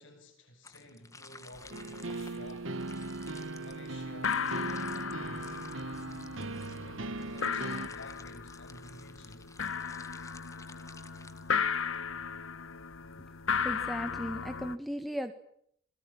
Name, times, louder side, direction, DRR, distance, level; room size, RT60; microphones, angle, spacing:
voice 1, 0.0-2.7 3.6-5.6 6.6-9.5, left 1 dB, 65° left, 8.0 m, -52 dB
sound 1, 0.6-12.0, left 3 dB, 15° left, 2.0 m, -54 dB
sound 2, 1.5-1.7 1.9-2.5 2.8-3.4 3.7-3.8 4.1-14.8, left 6 dB, 80° left, 1.3 m, -36 dB
sound 3, 1.7-7.9, right 2 dB, 70° right, 1.9 m, -39 dB
voice 2, 13.6-15.3, equal, ahead, 1.7 m, -36 dB
28.0 x 22.0 x 9.0 m
head